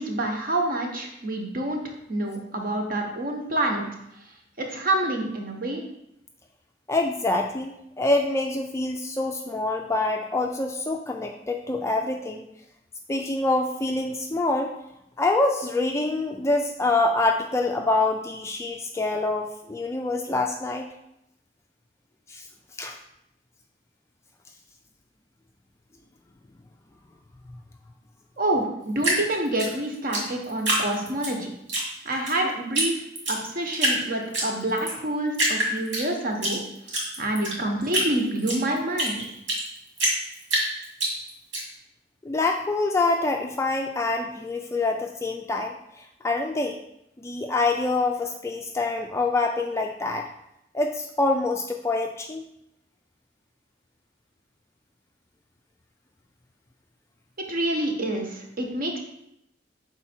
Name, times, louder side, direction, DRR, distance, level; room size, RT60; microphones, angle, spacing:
voice 1, 0.0-3.9 4.6-5.8 28.4-31.5 32.0-33.0 33.3-36.6 37.2-39.2 57.5-59.0, right 1 dB, 50° right, 2 dB, 1.0 m, -27 dB
voice 2, 6.9-12.4 13.1-14.7 15.2-20.9 22.3-22.4 22.8-23.0 42.2-46.8 47.2-50.3 50.7-52.4, left 2 dB, 15° left, 2 dB, 0.3 m, -26 dB
Drip, 29.0-31.3 31.7-32.4 32.7-32.9 33.1-34.0 34.3-35.0 35.3-36.5 36.9-39.7 40.0-41.6, right 1 dB, 75° right, 2.0 m, -25 dB
5.7 x 4.1 x 4.3 m, 0.81 s
head